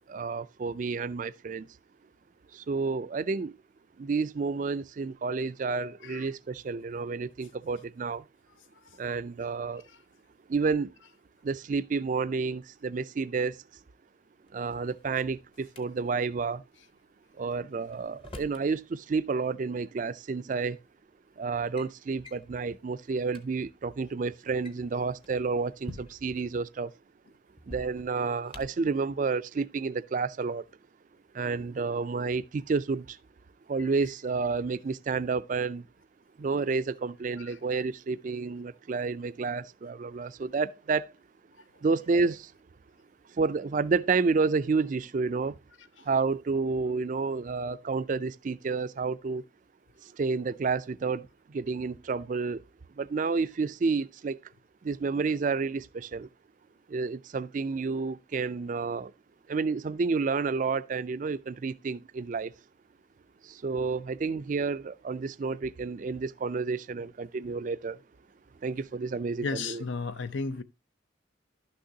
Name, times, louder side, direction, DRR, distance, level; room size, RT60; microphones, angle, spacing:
voice 1, 0.1-1.7 2.5-3.5 4.0-8.2 9.0-9.8 10.5-10.9 11.4-13.6 14.5-16.6 17.4-20.8 21.4-26.9 27.7-30.7 31.3-33.2 33.7-35.9 36.4-41.1 41.8-42.5 43.3-45.6 46.0-49.4 50.0-52.6 53.0-54.4 54.8-56.3 56.9-59.1 59.5-62.5 63.4-68.0 68.6-69.8, right 4 dB, 45° right, 0.4 m, -30 dB
Drawer open or close, 14.5-15.8 17.5-18.7 20.0-20.1 20.9-21.1 21.5-21.9 22.2-22.5 23.0-23.1 23.3-23.4 24.4-26.4 27.6-28.9, left 1 dB, 30° left, 0.8 m, -47 dB
voice 2, 69.4-70.6, left 4 dB, 75° left, 0.6 m, -33 dB
11.5 x 6.4 x 2.7 m
head